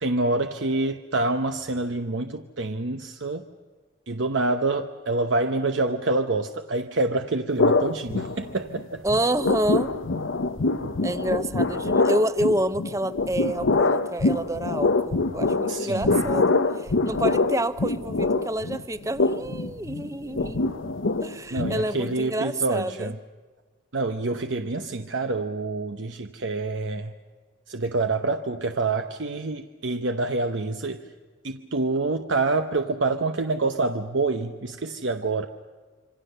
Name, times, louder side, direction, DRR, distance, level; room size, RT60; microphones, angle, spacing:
voice 1, 0.0-3.5 4.1-9.0 15.7-16.1 21.5-23.2 23.9-27.1 27.7-31.0 31.4-35.5, right 3 dB, 75° right, 6 dB, 0.9 m, -27 dB
sound 1, 7.6-8.8 9.1-22.2, left 3 dB, 90° left, 0.9 m, -25 dB
voice 2, 9.0-9.9 11.0-20.7 21.2-23.1, right 1 dB, 15° right, 13 dB, 0.7 m, -28 dB
26.5 x 25.0 x 6.7 m, 1.4 s
head